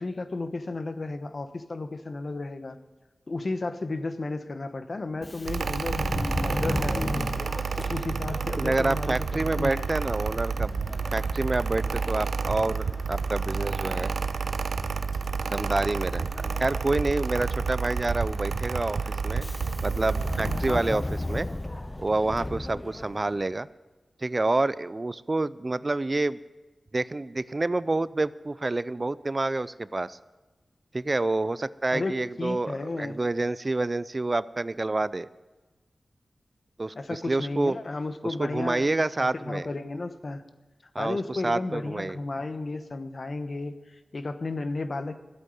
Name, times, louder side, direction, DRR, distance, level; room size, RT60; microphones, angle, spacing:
voice 1, 0.0-2.8 3.3-7.3 7.8-9.9 20.7-21.1 31.9-32.1 32.4-33.2 36.9-38.9 39.2-40.4 41.0-45.2, left 3 dB, 55° left, 10 dB, 1.0 m, -33 dB
Subway metro underground, 5.1-23.5, left 1 dB, 20° left, 0.6 m, -37 dB
Mechanical fan, 5.5-20.8, right 5 dB, 85° right, 0.6 m, -30 dB
voice 2, 8.6-14.1 15.5-19.5 19.8-21.0 21.3-21.5 22.0-23.7 24.2-26.4 26.9-30.2 30.9-35.3 36.8-37.7 38.2-39.7 40.9-42.2, right 2 dB, 35° right, 17 dB, 0.4 m, -28 dB
14.0 x 8.2 x 9.4 m, 1.2 s
wide cardioid pair, 65°, 0 cm